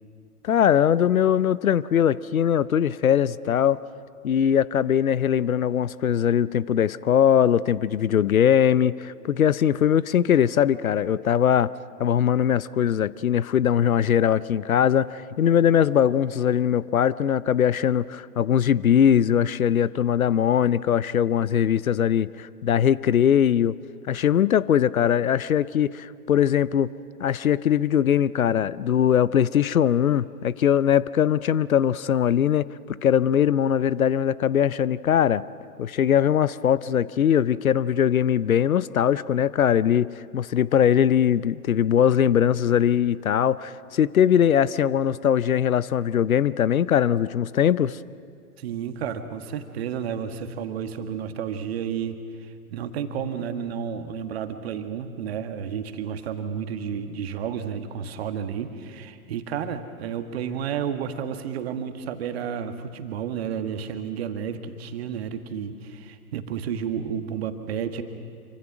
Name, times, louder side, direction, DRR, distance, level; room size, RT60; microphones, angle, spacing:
voice 1, 0.4-3.8 4.2-11.7 12.0-23.8 24.1-26.9 27.2-35.4 35.8-48.0, left 9 dB, 65° left, 19 dB, 0.7 m, -21 dB
voice 2, 48.6-68.0, right 8 dB, 40° right, 8 dB, 1.7 m, -31 dB
26.0 x 25.0 x 6.1 m, 2.3 s
figure-of-eight pair, 125°, 46 cm